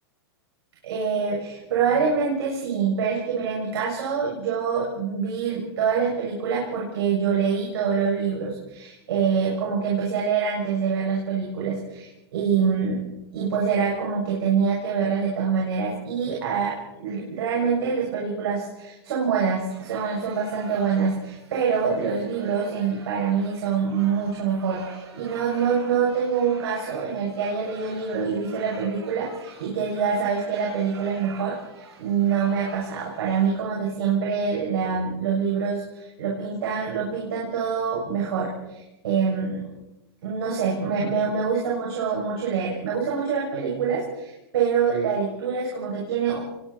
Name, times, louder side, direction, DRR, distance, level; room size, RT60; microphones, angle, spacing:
voice 1, 0.8-13.0 13.3-16.7 17.0-31.6 32.0-39.6 40.2-46.4, right 6 dB, 75° right, -4 dB, 7.1 m, -25 dB
sound 1, 19.7-33.6, right 5 dB, 90° right, 6.6 m, -47 dB
27.0 x 23.5 x 4.4 m, 0.96 s
hypercardioid pair, 140°, 13 cm